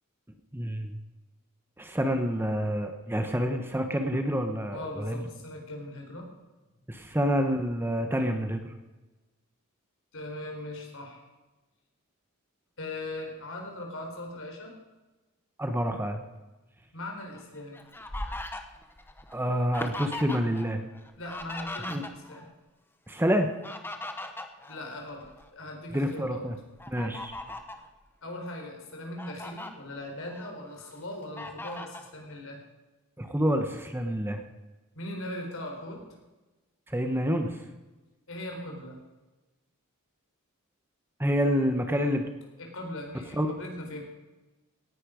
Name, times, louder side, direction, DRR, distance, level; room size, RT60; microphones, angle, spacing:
voice 1, 0.5-0.9 1.8-5.2 6.9-8.6 15.6-16.2 19.3-20.8 21.9-22.0 23.1-23.5 25.9-26.5 26.9-27.3 33.2-34.4 36.9-37.5 41.2-42.3 43.4-43.5, equal, 10° right, 6 dB, 1.1 m, -27 dB
voice 2, 4.7-6.3 10.1-11.2 12.8-14.7 16.9-17.8 21.2-22.5 24.7-26.4 28.2-32.6 34.9-36.0 38.3-39.0 42.6-44.0, left 1 dB, 65° left, 1 dB, 4.2 m, -39 dB
Fowl, 17.3-20.7 20.9-22.5 23.4-25.5 26.0-26.1 26.8-27.9 28.5-28.6 28.9-29.7 30.2-30.9 31.4-32.1, left 1 dB, 10° left, 1.1 m, -39 dB
17.5 x 11.0 x 5.1 m, 1.1 s
head